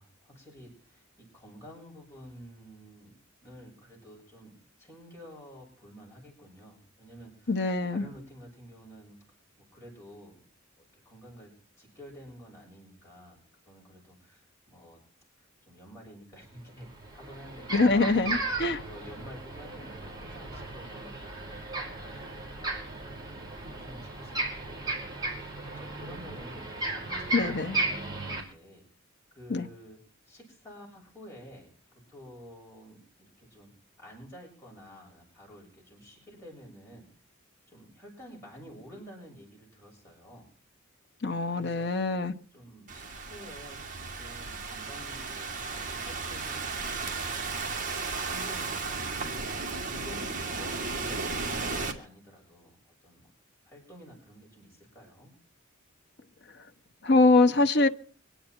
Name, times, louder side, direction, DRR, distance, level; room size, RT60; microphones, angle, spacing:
voice 1, 0.0-9.2 9.7-10.5 10.8-11.5 11.8-13.4 13.7-15.0 15.4-18.4 18.8-28.8 29.3-30.0 30.3-31.7 32.1-33.7 34.0-37.1 37.7-40.5 41.5-47.7 48.3-52.8 53.0-53.3 53.6-55.3, equal, 15° left, 6.9 m, -50 dB
voice 2, 7.5-8.1 17.7-18.8 27.3-27.8 29.5-29.7 41.2-42.3 57.0-57.9, left 3 dB, 55° left, 1.0 m, -23 dB
sound 1, 16.8-28.4, right 2 dB, 20° right, 4.6 m, -35 dB
Thunderstorm / Rain, 42.9-51.9, right 4 dB, 40° right, 2.3 m, -34 dB
25.0 x 10.0 x 4.5 m
head